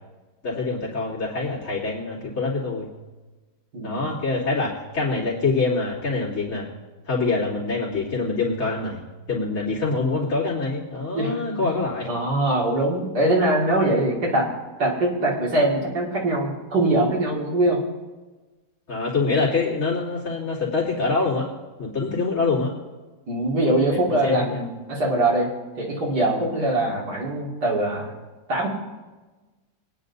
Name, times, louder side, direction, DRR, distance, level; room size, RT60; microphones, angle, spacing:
voice 1, 0.4-2.9 3.8-6.7 7.1-9.0 9.3-12.1 18.9-21.5 21.8-22.7 23.9-24.6, left 3 dB, 55° left, -8 dB, 3.6 m, -25 dB
voice 2, 3.7-4.1 11.1-11.8 12.1-14.5 14.8-17.8 23.3-25.5 25.7-28.1 28.5-28.7, right 1 dB, 80° right, -4 dB, 2.8 m, -22 dB
23.5 x 10.0 x 2.7 m, 1.2 s
omnidirectional pair, 1.7 m